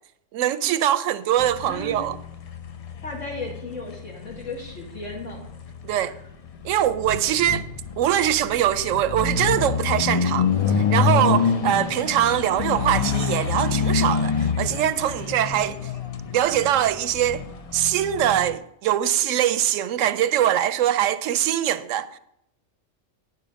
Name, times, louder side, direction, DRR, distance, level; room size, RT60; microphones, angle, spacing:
voice 1, 0.3-2.2 5.8-6.1 6.6-7.6 8.0-10.5 10.8-15.8 16.3-17.4 17.7-22.2, right 11 dB, 75° right, 0.9 m, -22 dB
sound 1, 1.4-18.6, left 6 dB, 50° left, 0.4 m, -27 dB
voice 2, 1.7-2.1 3.0-5.4 6.0-6.1, left 2 dB, 70° left, 2.0 m, -35 dB
9.7 x 6.8 x 5.1 m
omnidirectional pair, 1.4 m